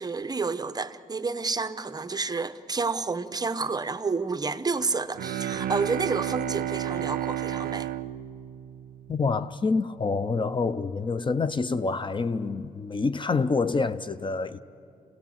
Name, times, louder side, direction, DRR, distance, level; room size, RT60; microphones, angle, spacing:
voice 1, 0.0-7.9, right 4 dB, 25° right, 0.7 m, -29 dB
Bowed string instrument, 5.1-9.4, right 12 dB, 75° right, 0.4 m, -32 dB
voice 2, 9.1-14.6, left 4 dB, 35° left, 0.5 m, -27 dB
26.5 x 17.0 x 7.2 m
cardioid pair, 95°, 15 cm